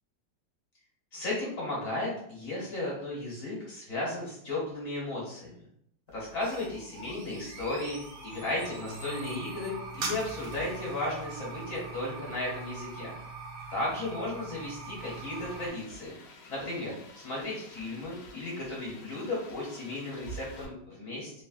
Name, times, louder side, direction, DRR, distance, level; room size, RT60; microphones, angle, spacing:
voice 1, 1.1-5.6 6.1-13.1 13.7-16.1 16.5-21.3, left 2 dB, 55° left, -5 dB, 1.2 m, -35 dB
sound 1, 6.1-15.7, right 3 dB, 80° right, 0.6 m, -42 dB
sound 2, 15.0-20.7, right 1 dB, 75° left, 1.1 m, -49 dB
3.2 x 2.1 x 2.3 m, 0.71 s
omnidirectional pair, 1.9 m